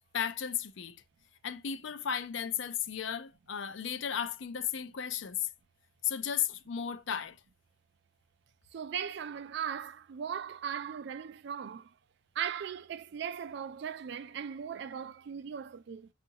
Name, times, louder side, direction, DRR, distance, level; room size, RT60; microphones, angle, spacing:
voice 1, 0.1-1.0 1.4-5.5 6.0-7.4, left 8 dB, 65° left, 0.5 m, -34 dB
voice 2, 8.7-11.9 12.4-16.1, right 8 dB, 55° right, 0.3 m, -38 dB
6.9 x 2.5 x 2.8 m
head